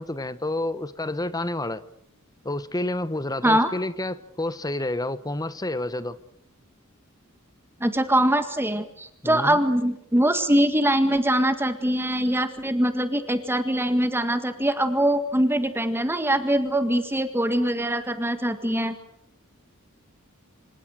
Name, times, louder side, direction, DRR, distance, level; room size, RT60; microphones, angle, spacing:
voice 1, 0.0-1.8 2.4-6.2 9.2-9.6, left 1 dB, 15° left, 1.2 m, -29 dB
voice 2, 7.8-19.0, right 1 dB, 10° right, 1.8 m, -23 dB
27.5 x 26.0 x 6.6 m
head